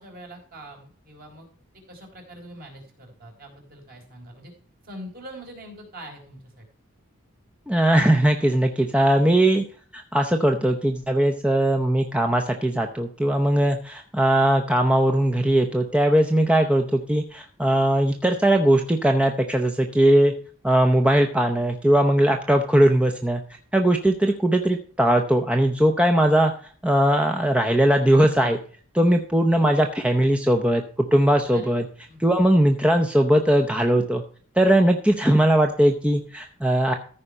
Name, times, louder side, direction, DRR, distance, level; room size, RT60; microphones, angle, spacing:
voice 1, 0.0-1.5 1.9-4.5 4.8-6.6 31.5-32.3, right 1 dB, 45° right, 1 dB, 4.5 m, -43 dB
voice 2, 7.7-9.6 9.9-20.3 20.6-23.4 23.7-26.5 26.8-28.6 28.9-30.8 31.1-31.8 32.2-34.2 34.6-36.9, right 1 dB, 5° right, 4 dB, 0.7 m, -19 dB
14.5 x 5.1 x 5.5 m, 0.44 s
head